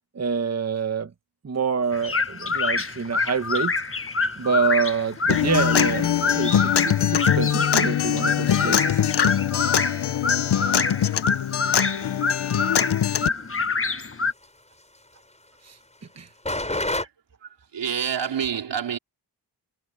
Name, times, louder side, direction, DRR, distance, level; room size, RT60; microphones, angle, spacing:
voice 1, 0.1-1.1 1.4-3.7 4.4-9.0 15.7-15.8 16.2-16.3, right 5 dB, 40° right, 1.3 m, -26 dB
sound 1, 1.8-17.0, left 1 dB, 15° left, 6.7 m, -39 dB
sound 2, 1.9-14.3, left 4 dB, 30° left, 1.3 m, -26 dB
Acoustic guitar, 5.3-13.3, left 10 dB, 70° left, 0.9 m, -23 dB
voice 2, 17.4-19.0, right 8 dB, 90° right, 4.3 m, -28 dB
cardioid pair, 70°, 42 cm